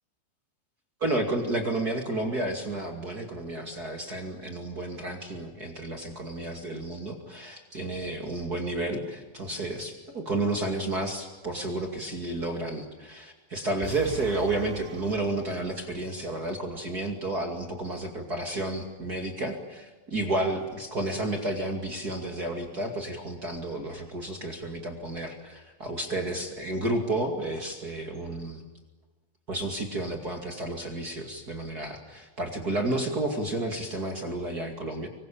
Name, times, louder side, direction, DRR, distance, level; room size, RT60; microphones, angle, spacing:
voice 1, 1.0-28.6 29.5-35.1, right 2 dB, 40° right, 3 dB, 1.4 m, -31 dB
sound 1, 13.8-16.1, right 11 dB, 70° right, 2.6 m, -41 dB
26.0 x 23.5 x 8.7 m, 1.3 s
omnidirectional pair, 5.7 m